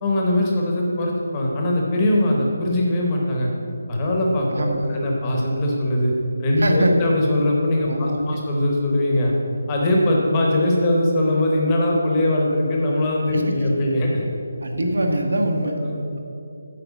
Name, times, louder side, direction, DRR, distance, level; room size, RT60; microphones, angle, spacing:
voice 1, 0.0-3.5 3.9-6.1 6.4-9.3 9.7-14.3 15.6-16.0, left 1 dB, 15° left, -2 dB, 0.8 m, -21 dB
voice 2, 4.5-5.0 6.6-6.9 7.9-8.2 13.3-13.4 14.6-15.8, right 1 dB, 75° right, 3 dB, 1.4 m, -23 dB
8.3 x 4.7 x 7.1 m, 2.7 s
hypercardioid pair, 180°, 0 cm